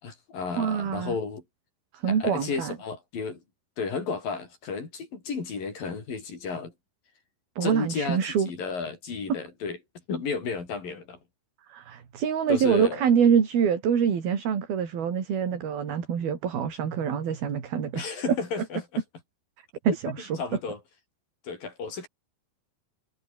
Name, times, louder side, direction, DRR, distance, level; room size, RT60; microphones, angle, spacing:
voice 1, 0.0-1.4 2.1-3.4 3.8-6.7 7.6-9.8 10.1-11.2 12.5-13.0 17.9-19.0 19.9-20.0 20.4-20.8 21.4-22.1, left 5 dB, 55° left, 6.8 m, -32 dB
voice 2, 0.6-1.2 1.9-2.8 7.6-8.5 9.3-9.4 11.7-18.0 19.9-20.3, right 7 dB, 65° right, 5.3 m, -25 dB
omnidirectional pair, 4.8 m